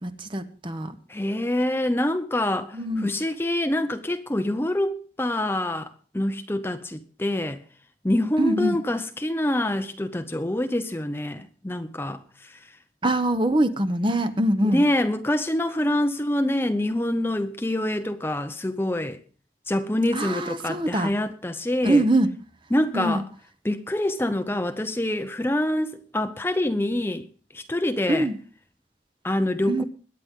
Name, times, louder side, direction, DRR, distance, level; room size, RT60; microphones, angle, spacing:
voice 1, 0.0-1.0 2.7-3.1 8.4-8.8 13.0-14.8 20.1-21.1 21.8-22.3 22.9-23.2 28.1-28.4 29.7-29.8, right 1 dB, 30° right, 0.9 m, -23 dB
voice 2, 1.1-5.9 6.1-7.6 8.0-12.6 14.6-19.2 19.7-22.1 22.7-23.2 23.6-27.3 27.5-28.3 29.2-29.8, left 1 dB, 15° left, 0.7 m, -26 dB
21.5 x 9.5 x 3.7 m
head